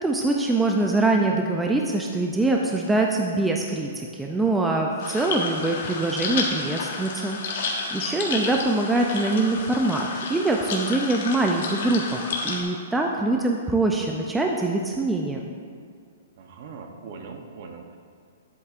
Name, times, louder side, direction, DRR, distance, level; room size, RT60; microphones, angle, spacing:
voice 1, 0.0-15.4, right 2 dB, 5° right, 0 dB, 0.3 m, -24 dB
sound 1, 5.0-12.6, left 4 dB, 55° left, 1.2 m, -31 dB
voice 2, 8.0-8.3 16.4-18.0, right 4 dB, 45° right, 4 dB, 0.8 m, -41 dB
9.9 x 8.1 x 2.5 m, 2.1 s
hypercardioid pair, 165°, 0 cm